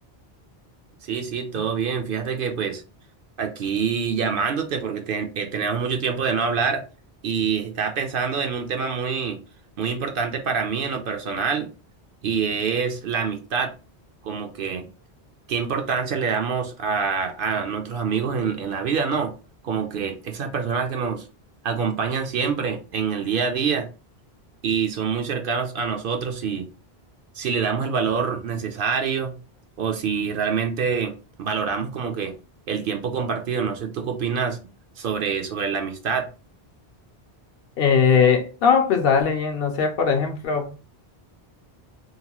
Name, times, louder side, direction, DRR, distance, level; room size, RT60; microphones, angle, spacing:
voice 1, 1.0-2.8 3.4-6.8 7.2-9.4 9.8-11.7 12.2-13.7 14.2-14.9 15.5-19.3 19.6-21.3 21.6-23.9 24.6-26.7 27.3-29.4 29.8-31.1 31.4-32.3 32.7-34.6 35.0-36.3, right 6 dB, 65° right, 0.7 m, -26 dB
voice 2, 37.8-40.8, left 6 dB, 65° left, 0.7 m, -20 dB
2.8 x 2.1 x 2.9 m
omnidirectional pair, 1.1 m